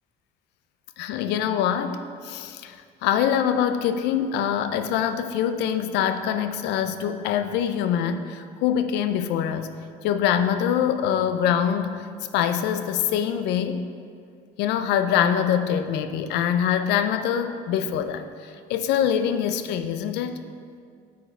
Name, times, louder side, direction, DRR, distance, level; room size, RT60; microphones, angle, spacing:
voice 1, 1.0-9.7 10.0-12.0 12.3-13.8 14.6-20.4, left 9 dB, 90° left, 9 dB, 0.5 m, -24 dB
8.5 x 4.7 x 4.5 m, 2.2 s
cardioid pair, 110°, 17 cm